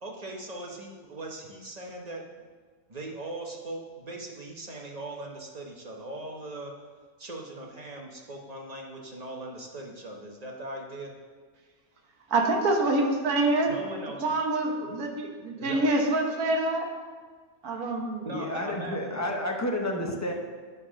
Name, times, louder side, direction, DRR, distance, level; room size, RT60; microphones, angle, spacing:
voice 1, 0.0-2.2 2.9-6.8 7.2-11.1 13.7-14.4 15.6-15.8 18.2-19.2, right 2 dB, 30° right, 0 dB, 1.0 m, -39 dB
voice 2, 12.3-13.7 14.2-16.9 17.6-18.3, right 2 dB, 85° right, 2 dB, 1.6 m, -26 dB
voice 3, 18.3-20.3, left 1 dB, 20° left, 1 dB, 0.5 m, -30 dB
10.5 x 4.1 x 6.2 m, 1.5 s
omnidirectional pair, 1.5 m